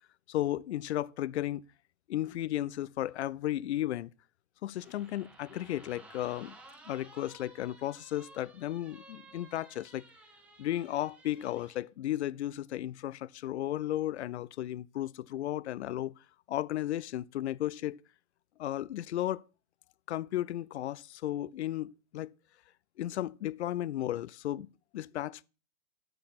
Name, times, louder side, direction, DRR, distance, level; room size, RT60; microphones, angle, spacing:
voice 1, 0.3-1.6 2.1-4.1 4.6-6.5 6.9-10.0 10.6-16.1 16.5-18.0 18.6-19.4 20.1-22.3 23.0-25.4, left 13 dB, 50° left, 0.4 m, -34 dB
sound 1, 4.7-11.8, right 2 dB, 5° right, 0.5 m, -55 dB
10.0 x 6.4 x 4.0 m
hypercardioid pair, 145°, 43 cm